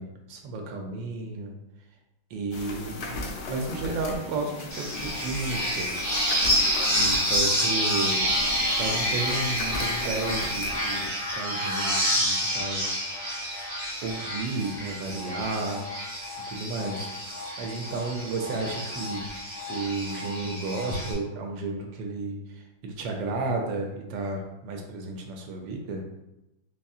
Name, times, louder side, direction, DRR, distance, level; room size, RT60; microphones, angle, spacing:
voice 1, 0.0-1.6 2.3-6.2 6.9-8.3 8.7-13.5 14.0-15.8 16.5-17.1 17.6-19.3 19.7-26.0, right 3 dB, 85° right, 2 dB, 1.3 m, -33 dB
sound 1, 2.5-11.1, left 2 dB, 75° left, 1.2 m, -37 dB
sound 2, 4.7-21.1, equal, 25° left, 0.3 m, -28 dB
4.1 x 2.6 x 2.4 m, 0.92 s
omnidirectional pair, 2.0 m